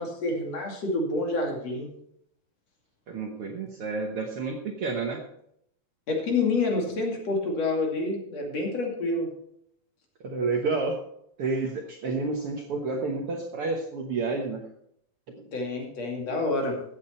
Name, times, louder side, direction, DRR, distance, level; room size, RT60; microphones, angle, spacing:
voice 1, 0.0-1.9 6.1-9.3 15.5-16.8, left 3 dB, 55° left, 0 dB, 3.5 m, -28 dB
voice 2, 3.1-5.2 10.2-11.0 11.4-14.6 15.3-15.4, right 3 dB, 60° right, 2 dB, 1.7 m, -30 dB
15.0 x 8.3 x 4.4 m, 0.73 s
omnidirectional pair, 3.6 m